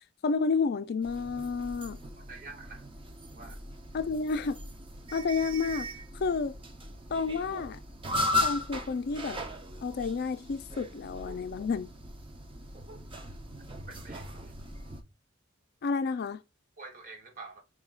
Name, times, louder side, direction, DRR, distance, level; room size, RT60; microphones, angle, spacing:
voice 1, 0.2-2.0 3.9-4.6 5.1-5.9 6.2-6.5 7.1-7.8 8.4-9.4 9.8-11.9 15.8-16.4, left 4 dB, 55° left, 0.4 m, -30 dB
sound 1, 1.0-15.0, left 1 dB, 25° right, 0.6 m, -37 dB
voice 2, 2.2-2.9 3.3-3.6 13.9-14.5 16.8-17.6, right 3 dB, 45° right, 1.0 m, -47 dB
4.9 x 2.3 x 3.5 m
head